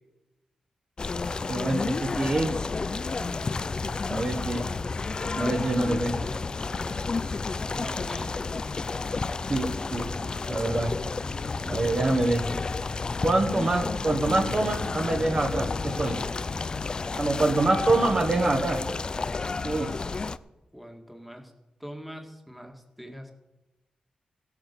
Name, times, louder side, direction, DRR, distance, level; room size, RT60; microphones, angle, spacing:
sound 1, 1.0-20.4, left 4 dB, 35° left, 0.4 m, -31 dB
voice 1, 1.5-2.5 3.2-3.3 4.1-4.6 5.4-6.2 9.5-10.1 10.5-11.0 11.6-12.5 13.2-16.2 17.2-18.8 19.6-19.9, right 2 dB, 35° right, 3 dB, 1.3 m, -25 dB
voice 2, 7.7-8.3 20.7-21.5 21.8-23.3, equal, ahead, 3 dB, 1.7 m, -42 dB
15.5 x 8.6 x 6.7 m, 0.99 s
wide cardioid pair, 115°, 2 cm